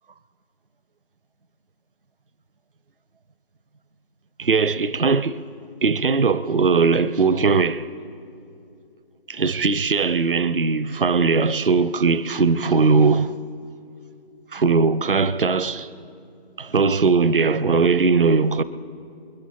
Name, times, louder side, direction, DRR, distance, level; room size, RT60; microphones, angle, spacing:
voice 1, 4.4-5.5 5.8-7.9 9.3-13.4 14.5-15.9 16.6-18.6, right 4 dB, 60° right, 0.6 m, -19 dB
28.0 x 11.0 x 4.2 m
figure-of-eight pair, 160°, 31 cm